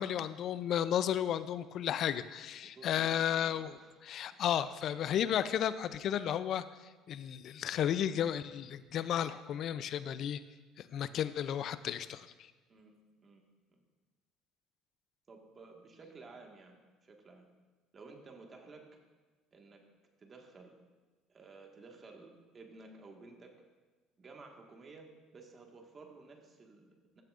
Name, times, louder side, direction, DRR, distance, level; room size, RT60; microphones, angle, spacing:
voice 1, 0.0-6.6 7.1-10.4 10.8-12.3, left 10 dB, 60° left, 14 dB, 0.4 m, -33 dB
voice 2, 2.6-4.0 12.7-13.0 13.2-13.4 13.7-13.8 15.3-17.5 17.9-18.8 19.5-19.8 20.2-20.7 21.3-23.5 24.2-25.1 25.3-27.2, right 3 dB, 35° right, 2 dB, 1.6 m, -54 dB
14.0 x 7.6 x 2.5 m, 1.3 s
supercardioid pair, 75°, 0 cm